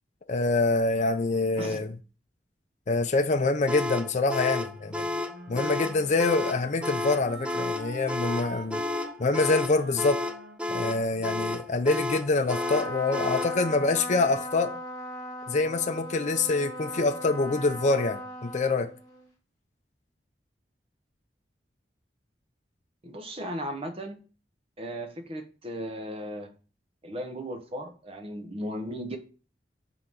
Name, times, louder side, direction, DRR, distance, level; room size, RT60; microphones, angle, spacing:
voice 1, 0.3-1.9 2.9-5.1 5.5-8.8 9.2-10.2 10.7-14.8 15.5-18.9, left 3 dB, 40° left, 0.5 m, -25 dB
sound 1, 3.7-13.6, left 2 dB, 5° right, 0.4 m, -31 dB
Wind instrument woodwind instrument, 4.8-12.0, right 2 dB, 90° right, 1.2 m, -44 dB
Trumpet, 12.4-19.3, equal, 25° left, 2.0 m, -38 dB
voice 2, 23.0-24.2 24.8-26.5 27.0-29.2, equal, 35° right, 0.9 m, -36 dB
5.6 x 3.9 x 6.1 m
head